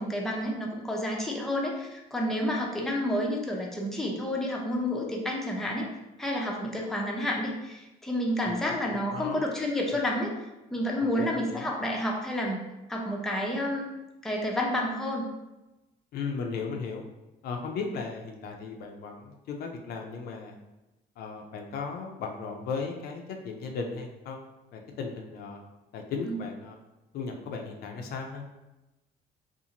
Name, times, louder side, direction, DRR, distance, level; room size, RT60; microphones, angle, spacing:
voice 1, 0.0-5.9 6.2-10.3 10.7-12.6 12.9-13.9 14.2-15.2 26.3-26.4, left 1 dB, ahead, -2 dB, 0.5 m, -30 dB
voice 2, 8.4-9.4 11.0-11.7 16.1-17.0 17.4-20.6 21.2-24.4 24.7-25.6 25.9-26.8 27.1-28.4, left 5 dB, 65° left, 2 dB, 0.5 m, -36 dB
2.6 x 2.4 x 2.8 m, 0.99 s
cardioid pair, 110°, 17 cm